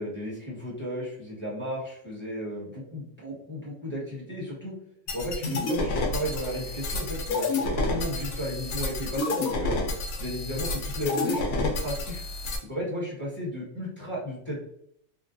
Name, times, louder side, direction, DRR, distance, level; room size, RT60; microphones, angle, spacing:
voice 1, 0.0-4.7 5.1-9.8 10.2-12.2 12.6-14.6, equal, 10° left, -6 dB, 1.1 m, -34 dB
sound 1, 5.1-12.6, left 2 dB, 80° left, 1.2 m, -29 dB
3.6 x 2.2 x 2.6 m, 0.71 s
omnidirectional pair, 1.5 m